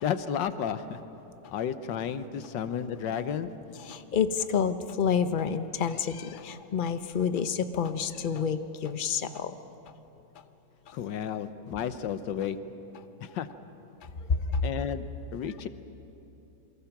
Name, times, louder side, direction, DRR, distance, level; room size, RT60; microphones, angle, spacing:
voice 1, 0.0-1.0 1.5-3.5 10.9-12.6 13.2-13.5 14.6-15.1 15.3-15.7, left 8 dB, 75° left, 11 dB, 1.5 m, -32 dB
voice 2, 3.8-9.5 14.3-14.6, left 6 dB, 55° left, 10 dB, 0.5 m, -28 dB
27.5 x 24.0 x 5.9 m, 3.0 s
omnidirectional pair, 2.0 m